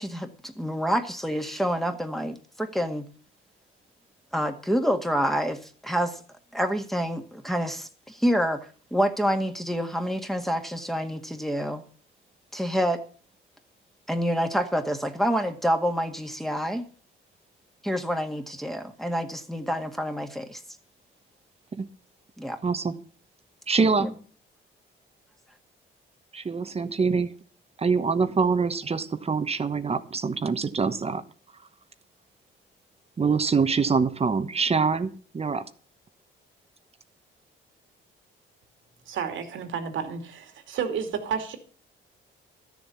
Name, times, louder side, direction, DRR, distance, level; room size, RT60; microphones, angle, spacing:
voice 1, 0.0-3.1 4.3-6.2 6.5-8.6 8.9-11.8 12.5-13.0 14.1-16.9 17.8-20.6 22.4-22.6 23.8-24.1, equal, ahead, 1.9 m, -27 dB
voice 2, 22.6-22.9 23.7-24.1 26.3-27.3 27.8-31.2 33.2-35.7, right 5 dB, 30° right, 1.1 m, -25 dB
voice 3, 39.1-41.6, right 7 dB, 75° right, 2.5 m, -31 dB
13.0 x 7.3 x 7.0 m
cardioid pair, 90°, 20 cm